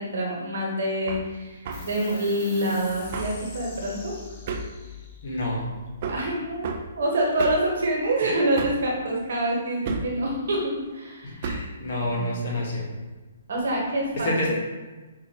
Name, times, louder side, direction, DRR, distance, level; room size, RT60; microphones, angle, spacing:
voice 1, 0.0-4.1 6.1-11.4 12.0-12.3 13.5-14.5, right 1 dB, 65° right, -1 dB, 1.1 m, -26 dB
Hammer, 1.1-1.3 1.6-1.9 3.1-3.4 4.5-4.8 6.0-6.3 6.6-6.9 7.4-7.7 8.6-8.9 9.8-10.2 11.4-11.7, right 4 dB, 45° right, 0.3 m, -31 dB
sound 1, 1.7-8.6, left 5 dB, 25° left, 0.7 m, -45 dB
voice 2, 5.2-5.7 11.2-12.9 14.1-14.5, left 1 dB, 60° left, -3 dB, 1.1 m, -28 dB
4.4 x 2.5 x 2.8 m, 1.2 s
hypercardioid pair, 145°, 0 cm